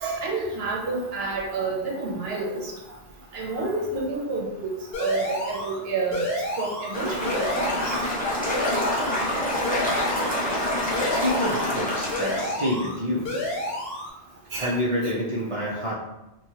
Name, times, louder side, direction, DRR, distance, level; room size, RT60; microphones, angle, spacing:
voice 1, 0.0-2.7 3.3-4.7 5.0-6.3 6.6-7.9 14.5-14.7, right 3 dB, 65° right, -2 dB, 0.9 m, -29 dB
sound 1, 4.9-5.8 6.1-7.0 7.3-8.1 8.5-9.3 9.6-10.5 10.9-11.8 12.1-13.0 13.3-14.1, left 1 dB, 60° left, 1.0 m, -30 dB
sound 2, 6.9-12.5, left 1 dB, 10° left, 0.5 m, -26 dB
voice 2, 11.1-13.3 14.6-15.9, left 1 dB, 50° right, -7 dB, 0.4 m, -27 dB
2.9 x 2.2 x 2.7 m, 0.94 s
omnidirectional pair, 1.2 m